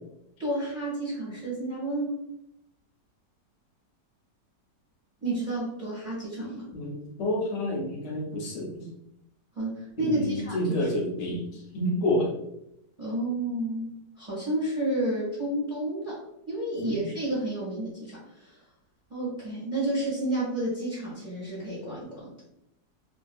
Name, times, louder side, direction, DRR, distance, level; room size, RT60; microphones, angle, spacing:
voice 1, 0.4-2.2 5.2-6.6 9.5-10.9 13.0-18.6 19.1-22.3, right 1 dB, 5° right, -7 dB, 1.1 m, -31 dB
voice 2, 6.7-8.8 10.0-11.4 11.7-12.3 16.8-17.0, left 1 dB, 80° left, -1 dB, 1.3 m, -29 dB
3.2 x 2.5 x 2.2 m, 0.80 s
omnidirectional pair, 1.9 m